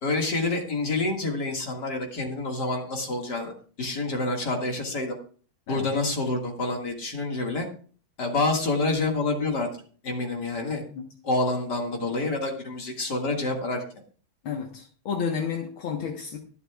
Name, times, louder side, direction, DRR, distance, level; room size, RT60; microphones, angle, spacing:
voice 1, 0.0-5.2 5.7-7.7 8.2-9.7 10.0-10.8 11.2-13.8, left 2 dB, 50° left, 1 dB, 2.6 m, -27 dB
voice 2, 14.4-16.4, left 6 dB, 70° left, 2 dB, 2.1 m, -31 dB
24.0 x 8.4 x 2.4 m, 0.42 s
omnidirectional pair, 2.3 m